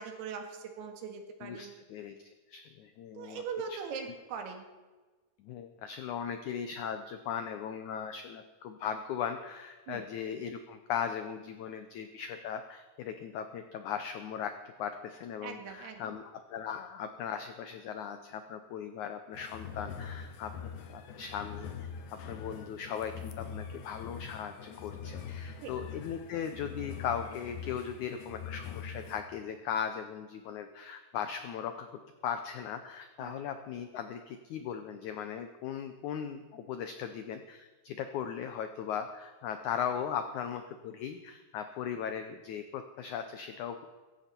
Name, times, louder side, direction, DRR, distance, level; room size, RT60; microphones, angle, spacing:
voice 1, 0.0-1.7 3.2-4.6 9.9-10.1 15.4-16.0 25.6-25.7 33.2-33.4, right 6 dB, 85° right, 5 dB, 3.8 m, -41 dB
voice 2, 1.4-3.4 3.7-3.8 5.4-14.5 14.8-20.5 20.9-31.9 32.2-43.8, left 8 dB, 85° left, 8 dB, 1.7 m, -38 dB
sound 1, 19.3-29.2, left 7 dB, 65° left, 2.5 m, -43 dB
16.5 x 15.0 x 4.4 m, 1.3 s
omnidirectional pair, 4.5 m